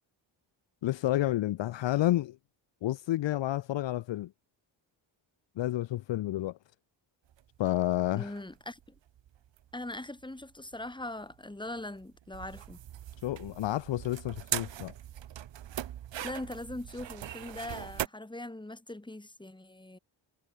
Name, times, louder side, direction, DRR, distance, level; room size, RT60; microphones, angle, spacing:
voice 1, 0.8-2.4 2.8-4.3 5.6-6.5 7.6-8.3 13.2-14.9, left 14 dB, 65° left, 0.6 m, -30 dB
sound 1, 7.3-18.1, right 11 dB, 65° right, 1.1 m, -41 dB
voice 2, 8.1-8.8 9.7-12.8 16.2-20.0, left 1 dB, 10° left, 2.7 m, -41 dB
cardioid pair, 105°, 47 cm